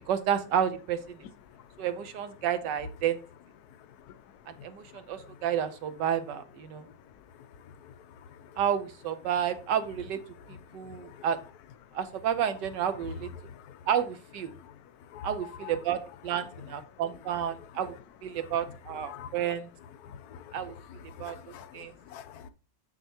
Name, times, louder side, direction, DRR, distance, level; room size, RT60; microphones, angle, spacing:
voice 1, 0.1-1.2 1.8-3.2 4.5-6.8 8.6-10.2 10.5-11.4 11.9-13.3 13.9-14.5 15.2-17.9 18.2-19.7 20.5-20.7 21.2-21.4 21.7-21.9, right 9 dB, 65° right, 1.3 m, -30 dB
voice 2, 10.8-11.2 13.5-13.8 14.5-14.6 15.1-15.3 15.6-15.7 19.1-19.3 20.0-20.6 21.1-22.5, left 8 dB, 70° left, 0.9 m, -46 dB
7.4 x 6.7 x 2.9 m
omnidirectional pair, 2.2 m